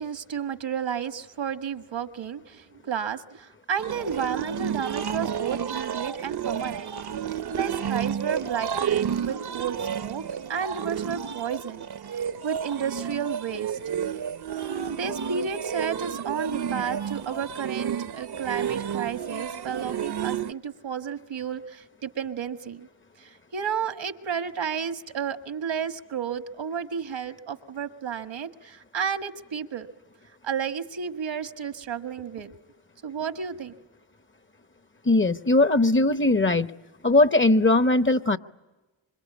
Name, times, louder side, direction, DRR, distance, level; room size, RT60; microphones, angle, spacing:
voice 1, 0.0-6.9 7.5-10.2 10.5-11.8 12.4-13.8 14.6-22.9 23.2-29.9 30.4-32.5 33.0-33.7, right 7 dB, 75° right, 9 dB, 1.5 m, -32 dB
sound 1, 3.8-20.5, right 8 dB, 55° right, 0.9 m, -31 dB
voice 2, 35.0-36.7 37.0-38.4, left 2 dB, 25° left, 11 dB, 1.0 m, -20 dB
26.5 x 25.0 x 8.4 m, 1.2 s
cardioid pair, 50°, 45 cm